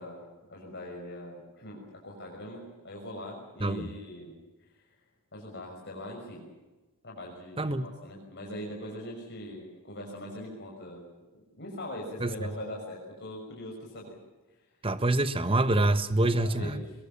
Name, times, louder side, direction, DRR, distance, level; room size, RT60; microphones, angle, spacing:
voice 1, 0.0-4.3 4.8-4.9 5.3-6.5 7.0-11.0 11.6-14.2 16.2-16.9, left 1 dB, 50° left, -1 dB, 6.0 m, -41 dB
voice 2, 3.6-3.9 7.6-7.9 12.2-12.3 14.8-16.8, right 2 dB, 25° right, 12 dB, 1.3 m, -26 dB
23.0 x 22.5 x 7.3 m, 1.1 s
head